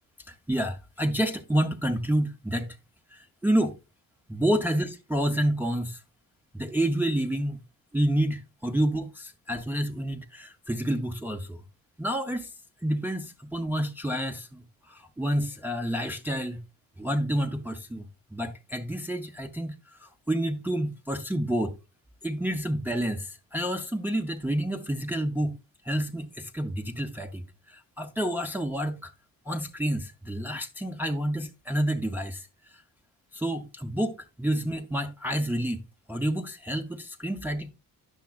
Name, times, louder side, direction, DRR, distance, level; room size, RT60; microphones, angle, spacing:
voice 1, 0.3-2.8 3.1-3.8 4.3-6.0 6.5-7.6 7.9-11.6 12.0-12.5 12.8-16.6 17.0-21.8 22.2-25.6 25.8-29.1 29.5-32.8 33.3-37.7, right 1 dB, 5° right, 0.5 m, -29 dB
10.0 x 7.0 x 2.3 m
cardioid pair, 150°, 35 cm